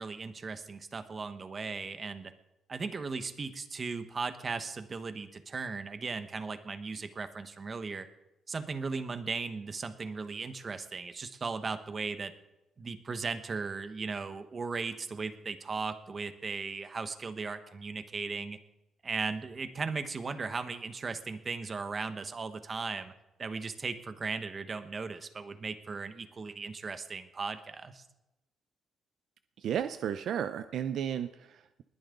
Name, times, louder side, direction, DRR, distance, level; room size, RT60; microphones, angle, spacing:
voice 1, 0.0-2.3 2.7-8.1 8.5-12.3 12.8-18.6 19.0-23.1 23.4-28.0, right 4 dB, 35° right, 10 dB, 1.3 m, -37 dB
voice 2, 29.6-31.8, right 9 dB, 70° right, 11 dB, 0.6 m, -33 dB
20.5 x 10.5 x 3.9 m, 0.93 s
cardioid pair, 90°, 0 cm